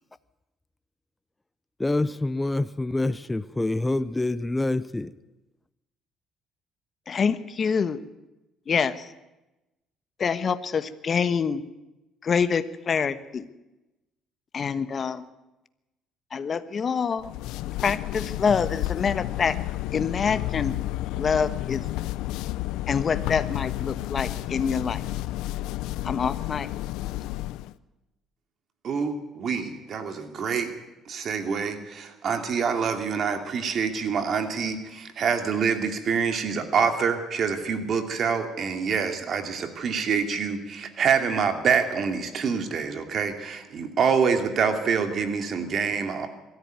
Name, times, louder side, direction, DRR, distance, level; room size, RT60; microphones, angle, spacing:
voice 1, 1.8-5.1, left 2 dB, 15° left, 14 dB, 0.7 m, -26 dB
voice 2, 7.1-8.0 8.7-9.1 10.2-11.6 12.2-13.5 14.5-15.2 16.3-17.3 17.8-19.6 19.9-20.8 21.1-21.9 22.9-25.0 26.0-26.7, left 6 dB, 40° left, 12 dB, 1.2 m, -26 dB
sound 1, 17.2-27.7, left 16 dB, 85° left, 0.6 m, -31 dB
voice 3, 28.8-30.7 31.1-46.3, right 6 dB, 55° right, 7 dB, 2.6 m, -26 dB
21.5 x 14.0 x 9.5 m, 1.0 s
cardioid pair, 85°, 0 cm